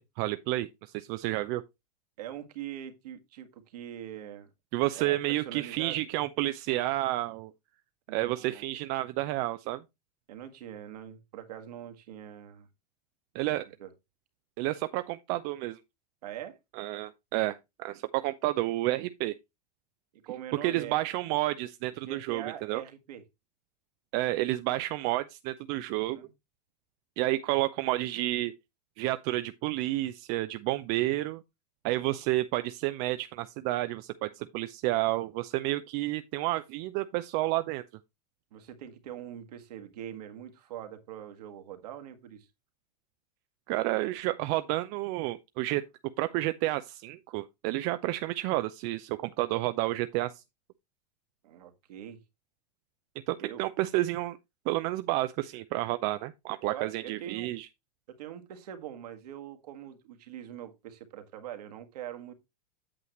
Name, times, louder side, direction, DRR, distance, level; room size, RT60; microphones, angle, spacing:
voice 1, 0.0-1.6 4.7-7.5 8.1-9.8 13.3-13.7 14.6-15.8 16.7-19.3 20.6-22.8 24.1-26.2 27.2-28.5 29.0-31.4 31.8-37.8 43.7-45.8 46.2-50.4 53.3-54.4 54.7-57.7, right 17 dB, 45° right, 0.5 m, -30 dB
voice 2, 2.2-4.5 5.0-6.0 8.1-8.7 10.3-12.7 13.8-13.9 16.2-16.6 20.3-21.0 22.0-23.2 26.1-26.3 38.5-42.5 51.4-52.2 53.4-53.6 56.6-57.5 58.2-62.3, right 10 dB, 70° right, 1.7 m, -43 dB
8.6 x 7.7 x 3.0 m
hypercardioid pair, 95°, 21 cm